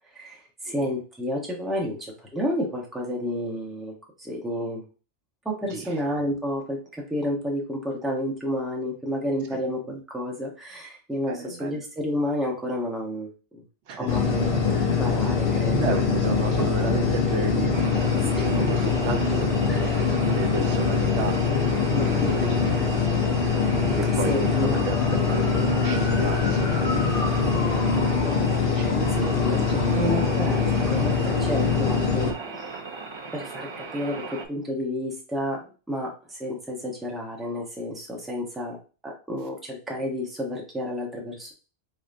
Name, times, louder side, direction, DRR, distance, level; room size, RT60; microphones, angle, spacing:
voice 1, 0.1-4.8 5.4-13.6 14.0-15.9 18.4-18.5 19.7-19.9 21.9-22.6 24.3-24.8 26.2-26.4 26.8-26.9 27.4-28.4 28.8-29.6 29.9-32.7 33.3-38.8 39.0-41.5, left 1 dB, ahead, -2 dB, 0.9 m, -31 dB
voice 2, 5.7-6.0 9.5-9.6 11.3-11.8 13.9-14.1 15.7-21.3 21.9-22.2 22.6-22.9 24.0-24.5 24.8-26.7 28.8-30.1 30.5-30.6, right 5 dB, 75° right, 5 dB, 0.9 m, -33 dB
sound 1, 14.1-32.3, left 5 dB, 55° left, 0.9 m, -23 dB
sound 2, 17.7-34.4, right 4 dB, 45° right, 0.4 m, -37 dB
4.0 x 3.5 x 2.5 m, 0.34 s
omnidirectional pair, 1.2 m